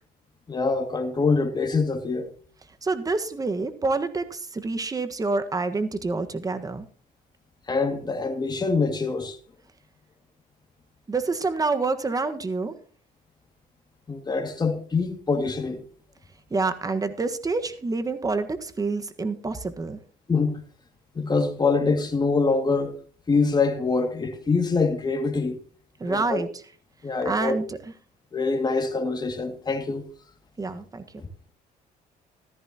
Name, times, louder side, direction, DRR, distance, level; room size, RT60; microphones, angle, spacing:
voice 1, 0.5-2.3 7.7-9.4 14.1-15.8 20.3-20.6 21.1-22.9 23.3-25.6 26.0-26.4 27.0-27.6 28.3-30.1 31.2-31.3, left 4 dB, 25° left, 2.2 m, -24 dB
voice 2, 2.8-6.9 11.1-12.8 16.5-20.0 26.0-26.5 27.2-27.8 30.6-31.0, right 3 dB, 20° right, 1.4 m, -27 dB
15.0 x 13.5 x 2.9 m
cardioid pair, 110°, 17 cm